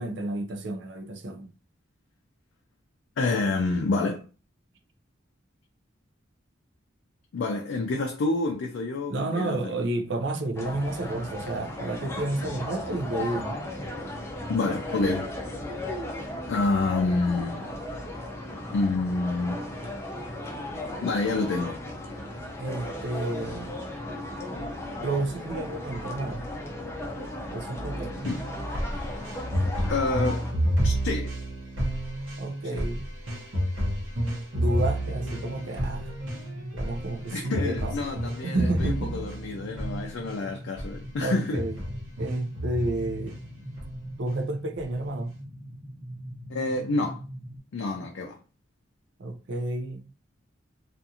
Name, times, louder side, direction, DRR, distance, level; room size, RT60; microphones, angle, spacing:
voice 1, 0.0-1.5 9.1-13.6 22.6-23.8 25.0-26.4 27.5-28.1 32.4-33.1 34.5-36.1 36.7-38.0 38.4-39.3 41.2-41.8 42.2-43.4 44.2-45.4 47.9-48.1 49.2-50.1, right 2 dB, 65° right, 0.5 m, -31 dB
voice 2, 3.2-4.2 7.3-9.8 14.5-15.3 16.5-17.6 18.7-19.6 21.0-21.8 28.2-28.4 29.9-30.5 30.8-31.3 32.7-32.8 37.3-41.6 46.5-47.2 47.7-48.4, left 3 dB, 70° left, 0.4 m, -28 dB
sound 1, 10.6-30.5, left 1 dB, 15° left, 0.5 m, -36 dB
sound 2, 28.2-40.4 40.8-41.0 41.3-43.4 43.8-44.3 44.8-44.9, equal, 85° right, 0.9 m, -30 dB
sound 3, 34.6-47.6, equal, 10° right, 0.8 m, -42 dB
2.5 x 2.4 x 2.7 m
head